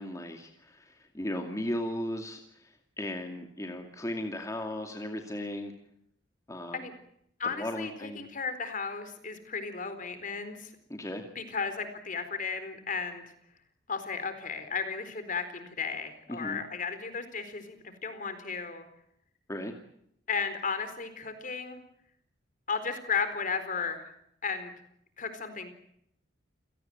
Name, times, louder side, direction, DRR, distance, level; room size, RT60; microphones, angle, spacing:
voice 1, 0.0-5.7 6.5-6.8 7.4-8.3 10.9-11.2 16.3-16.6 19.5-19.7, left 1 dB, 15° left, 3 dB, 2.4 m, -36 dB
voice 2, 7.4-10.7 11.4-13.3 13.9-17.8 18.0-18.9 20.3-21.8 22.7-24.0 24.4-24.7 25.2-25.7, left 5 dB, 45° left, 10 dB, 4.2 m, -34 dB
29.0 x 18.0 x 9.3 m, 0.75 s
head